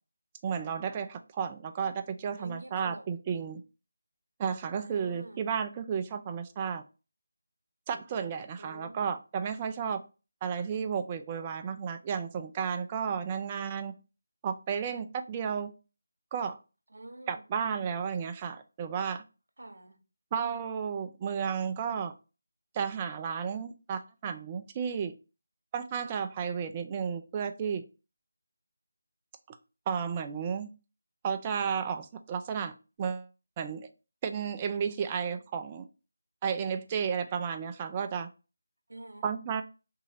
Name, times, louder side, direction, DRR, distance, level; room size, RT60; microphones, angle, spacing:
voice 1, 0.4-3.6 4.4-6.8 7.9-10.0 10.4-13.9 14.4-15.7 16.3-16.6 17.3-19.2 20.3-22.1 22.7-25.1 25.7-27.8 29.5-29.6 29.9-30.7 31.2-32.7 33.0-33.3 33.6-33.9 34.2-35.9 36.4-38.3 39.2-39.6, right 7 dB, 20° right, 0.3 m, -33 dB
voice 2, 2.3-3.1 4.7-5.6 8.6-9.0 16.9-17.4 19.6-20.0 38.9-39.3, right 1 dB, 80° right, 0.9 m, -47 dB
2.9 x 2.7 x 4.0 m
figure-of-eight pair, 165°, 0 cm